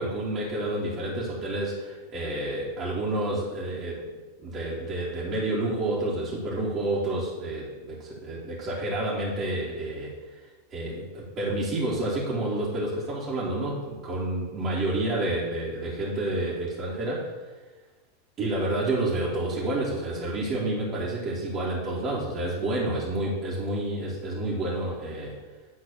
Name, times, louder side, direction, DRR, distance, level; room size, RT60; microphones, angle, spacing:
voice 1, 0.0-4.0 4.4-10.1 10.7-17.3 18.4-25.3, right 1 dB, 30° right, -8 dB, 2.4 m, -29 dB
10.5 x 3.9 x 7.4 m, 1.3 s
figure-of-eight pair, 90°, 0 cm